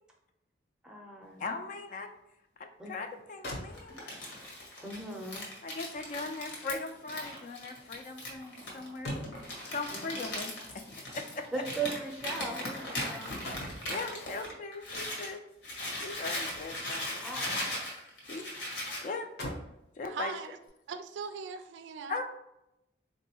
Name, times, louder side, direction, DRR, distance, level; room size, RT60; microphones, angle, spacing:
voice 1, 0.8-1.4 2.8-3.0 4.8-5.5 9.9-10.2 11.5-13.3 17.2-17.5, right 4 dB, 5° right, 0 dB, 0.5 m, -38 dB
voice 2, 1.4-2.1 2.6-4.0 5.6-9.2 9.6-10.8 11.1-11.4 13.3-13.4 13.9-15.4 16.0-17.6 18.3-18.4 19.0-19.3 20.0-20.3 22.1-22.2, left 3 dB, 45° left, 6 dB, 0.3 m, -39 dB
sound 1, 3.1-3.2 3.4-4.3 5.7-9.7 10.8-12.9 13.2-13.9 15.4-17.0 17.4-18.3 18.6-18.7 19.2-19.8 20.5-20.7, left 1 dB, 65° left, 0.8 m, -46 dB
Crumpling crinkling, 3.7-15.3 15.6-19.1, left 1 dB, 80° left, 1.1 m, -39 dB
voice 3, 20.0-20.6 20.9-22.2, right 5 dB, 80° right, 8 dB, 0.3 m, -40 dB
3.9 x 2.6 x 2.8 m, 0.86 s
head